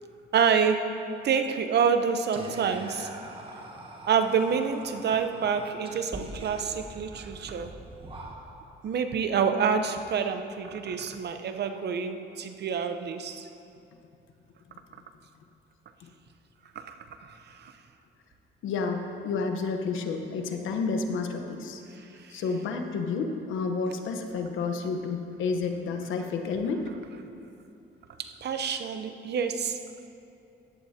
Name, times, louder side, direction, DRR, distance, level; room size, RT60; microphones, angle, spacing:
voice 1, 0.3-3.1 4.1-7.7 8.8-13.5 16.7-16.9 17.2-17.7 22.2-22.3 28.2-29.8, right 6 dB, 55° right, 8 dB, 0.8 m, -27 dB
Whispering, 2.3-8.8, right 1 dB, 25° right, 1.6 m, -43 dB
voice 2, 18.6-21.8 22.3-26.8, left 4 dB, 85° left, 5 dB, 1.0 m, -30 dB
15.5 x 11.5 x 2.8 m, 2.7 s
cardioid pair, 90°, 20 cm